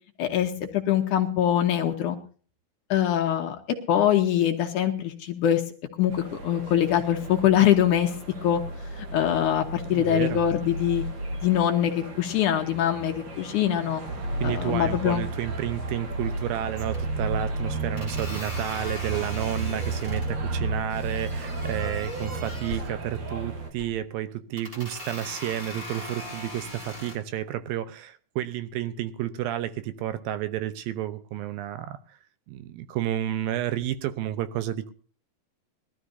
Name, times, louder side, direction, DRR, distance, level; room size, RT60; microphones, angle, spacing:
voice 1, 0.2-2.2 2.9-3.6 3.9-5.6 6.0-8.1 8.4-8.6 9.0-11.0 11.4-14.0 14.4-15.2, left 10 dB, 65° left, 4 dB, 2.2 m, -23 dB
sound 1, 6.1-23.7, right 2 dB, 50° right, 1.5 m, -33 dB
voice 2, 9.9-10.4 14.4-32.2 32.5-34.9, right 12 dB, 80° right, 12 dB, 2.6 m, -31 dB
sound 2, 16.0-16.4 16.7-17.3 18.0-20.3 20.9-22.9 23.6-24.0 24.6-27.1, left 1 dB, 20° right, 3.2 m, -40 dB
21.5 x 13.0 x 2.7 m, 0.41 s
omnidirectional pair, 4.3 m